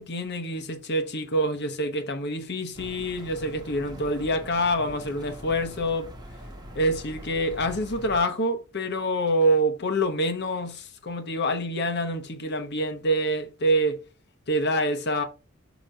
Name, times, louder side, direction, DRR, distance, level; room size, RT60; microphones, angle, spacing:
voice 1, 0.0-6.1 6.7-14.0 14.5-15.2, equal, 50° left, 1.0 m, -26 dB
sound 1, 2.7-8.2, equal, 20° right, 1.0 m, -43 dB
6.6 x 3.0 x 4.9 m
head